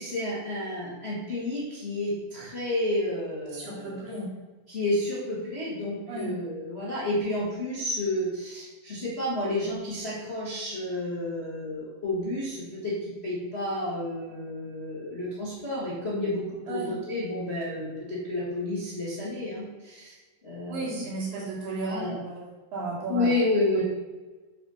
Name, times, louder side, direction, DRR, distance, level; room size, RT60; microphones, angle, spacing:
voice 1, 0.0-4.0 4.7-20.1 20.4-21.0 21.8-22.2 23.1-23.8, left 1 dB, 25° left, -7 dB, 1.5 m, -30 dB
voice 2, 3.5-4.3 6.1-6.3 16.7-16.9 20.7-23.3 23.7-23.8, right 3 dB, 70° right, -4 dB, 4.2 m, -34 dB
8.5 x 5.5 x 5.7 m, 1.2 s
omnidirectional pair, 4.2 m